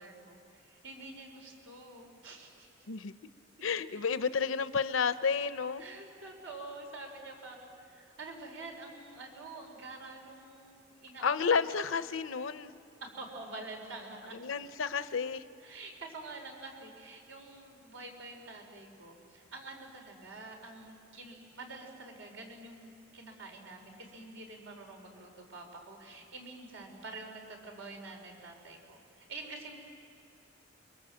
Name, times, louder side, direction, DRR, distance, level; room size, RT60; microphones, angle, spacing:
voice 1, 0.0-2.7 3.7-3.8 5.8-11.7 13.0-14.4 15.6-29.8, right 2 dB, 90° right, 2 dB, 5.1 m, -47 dB
voice 2, 3.6-5.8 11.2-12.7 14.3-15.4, left 5 dB, 85° left, 12 dB, 0.7 m, -31 dB
30.0 x 23.0 x 7.9 m, 2.6 s
head